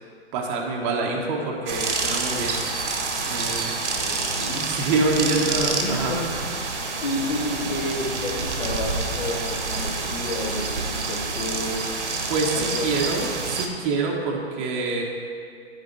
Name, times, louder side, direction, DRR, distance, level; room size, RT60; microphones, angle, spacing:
voice 1, 0.3-2.6 3.3-3.7 4.6-6.1 12.3-15.0, right 3 dB, 25° right, -1 dB, 1.2 m, -26 dB
sound 1, 1.7-13.7, right 3 dB, 85° right, 1.4 m, -28 dB
voice 2, 4.0-4.6 5.2-5.4 5.8-6.2 6.6-11.8 12.5-13.1, left 2 dB, 40° left, -2 dB, 1.9 m, -30 dB
11.5 x 5.0 x 4.6 m, 2.3 s
hypercardioid pair, 140°, 35 cm